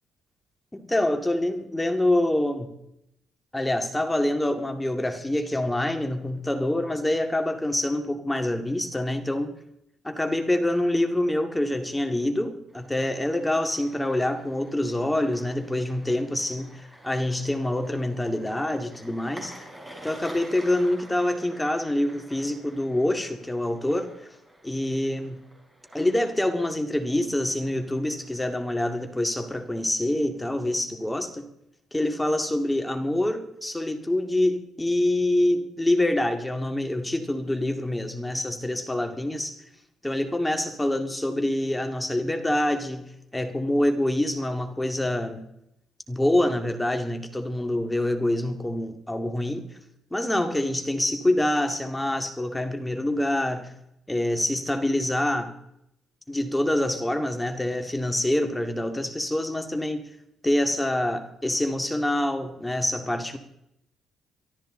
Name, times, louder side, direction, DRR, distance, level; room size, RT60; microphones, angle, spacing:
voice 1, 0.7-2.7 3.5-9.5 10.0-19.7 20.0-24.2 24.6-25.4 25.9-31.4 31.9-39.6 40.0-43.1 43.3-45.4 46.1-49.6 50.1-53.7 54.1-55.5 56.3-60.0 60.4-63.4, left 1 dB, 10° left, 6 dB, 2.1 m, -26 dB
sound 1, 12.7-29.6, right 1 dB, 10° right, 4.9 m, -49 dB
23.5 x 13.0 x 3.8 m, 0.80 s
cardioid pair, 90°, 0 cm